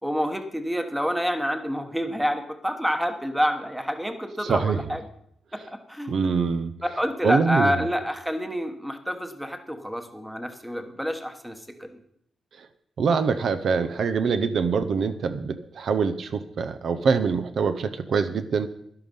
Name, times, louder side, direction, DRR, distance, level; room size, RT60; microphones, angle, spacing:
voice 1, 0.0-5.0 5.5-6.2 6.8-11.9, equal, 5° right, 7 dB, 1.1 m, -28 dB
voice 2, 4.4-4.8 6.1-6.7 7.2-7.8 12.6-12.7 13.0-18.7, right 5 dB, 55° right, 11 dB, 0.7 m, -24 dB
11.5 x 11.5 x 5.3 m, 0.70 s
wide cardioid pair, 165°, 0 cm